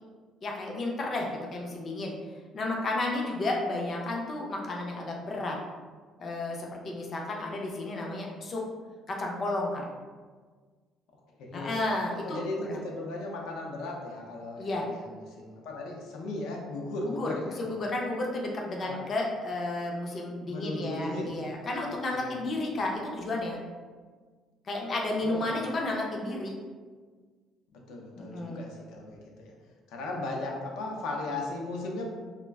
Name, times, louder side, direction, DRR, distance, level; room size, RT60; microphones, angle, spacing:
voice 1, 0.4-2.1 2.5-5.6 6.2-8.6 9.1-9.9 11.5-12.4 12.7-12.8 14.6-14.9 17.1-23.6 24.7-26.5 28.2-28.6, left 2 dB, 30° left, -1 dB, 0.4 m, -32 dB
voice 2, 11.4-11.8 12.2-17.6 18.8-19.0 20.5-21.3 22.0-22.4 25.2-25.5 27.7-29.5 29.9-32.0, left 2 dB, 80° left, 0 dB, 0.5 m, -36 dB
2.3 x 2.1 x 3.3 m, 1.5 s
cardioid pair, 175°, 0 cm